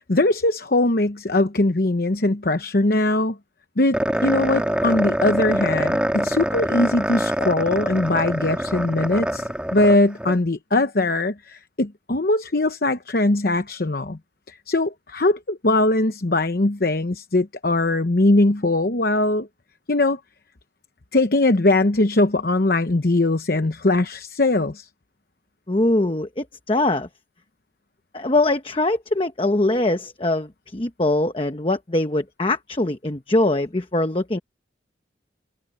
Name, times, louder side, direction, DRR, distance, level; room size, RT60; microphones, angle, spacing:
voice 1, 0.1-3.4 3.8-4.0 4.2-14.2 14.5-19.5 19.9-20.2 21.1-24.9, left 2 dB, 55° left, 0.9 m, -21 dB
sound 1, 3.9-10.4, equal, 5° right, 2.0 m, -24 dB
voice 2, 25.7-27.1 28.1-34.4, left 2 dB, 30° left, 1.0 m, -22 dB
head